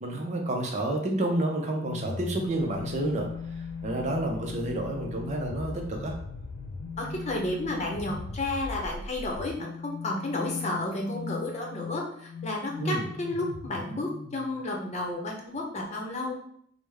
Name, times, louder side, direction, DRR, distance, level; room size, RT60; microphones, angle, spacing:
voice 1, 0.0-3.3 3.6-6.1 12.8-13.1, right 1 dB, 40° right, 1 dB, 0.6 m, -29 dB
sound 1, 1.8-14.6, left 5 dB, 65° left, 0.3 m, -39 dB
sound 2, 2.4-8.9, left 2 dB, 85° left, 0.8 m, -47 dB
voice 2, 7.0-16.4, left 2 dB, 40° left, 0 dB, 0.8 m, -32 dB
4.8 x 2.1 x 3.4 m, 0.68 s
head